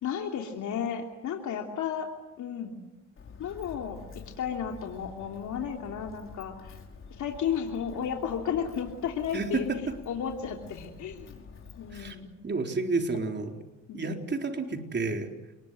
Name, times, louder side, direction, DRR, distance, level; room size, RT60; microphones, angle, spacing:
voice 1, 0.0-2.1 2.4-2.8 3.4-4.0 4.4-6.8 7.2-9.7 10.1-11.5 11.8-12.3 13.1-13.2 13.9-14.2, left 8 dB, 75° left, 2 dB, 3.1 m, -33 dB
Walk footsteps, 3.2-12.1, left 5 dB, 45° left, 5.3 m, -48 dB
voice 2, 9.3-9.8 11.9-12.2 12.4-13.5 13.9-15.3, right 3 dB, 35° right, 4 dB, 4.1 m, -30 dB
30.0 x 21.0 x 9.4 m, 1.1 s
cardioid pair, 90°, 30 cm